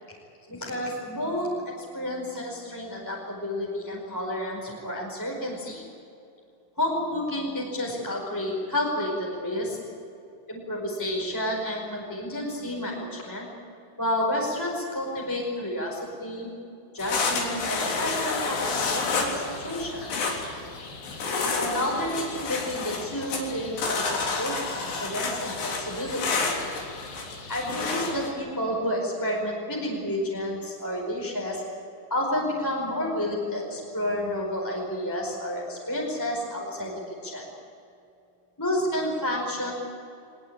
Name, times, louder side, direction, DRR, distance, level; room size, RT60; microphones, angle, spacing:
voice 1, 0.5-5.8 6.8-9.8 10.5-13.5 14.0-16.5 16.9-20.3 21.6-26.5 27.5-31.6 32.1-37.4 38.6-39.7, left 1 dB, 5° left, -3 dB, 4.3 m, -30 dB
sound 1, 17.0-28.3, left 4 dB, 65° left, 5.5 m, -30 dB
24.0 x 20.5 x 8.8 m, 2.6 s
omnidirectional pair, 5.3 m